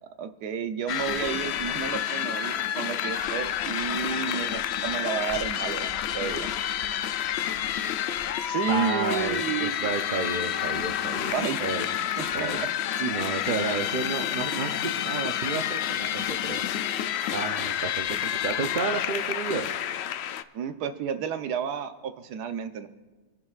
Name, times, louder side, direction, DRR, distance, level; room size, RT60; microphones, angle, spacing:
voice 1, 0.2-6.5 8.4-9.9 11.3-11.6 12.2-12.7 20.5-22.9, right 7 dB, 85° right, 9 dB, 1.3 m, -31 dB
sound 1, 0.9-20.4, left 10 dB, 85° left, 0.5 m, -29 dB
voice 2, 8.5-11.3 11.6-11.9 12.1-12.6 13.0-16.6 17.3-19.7, right 4 dB, 55° right, 4 dB, 0.5 m, -31 dB
26.5 x 11.0 x 2.4 m, 1.3 s
omnidirectional pair, 1.7 m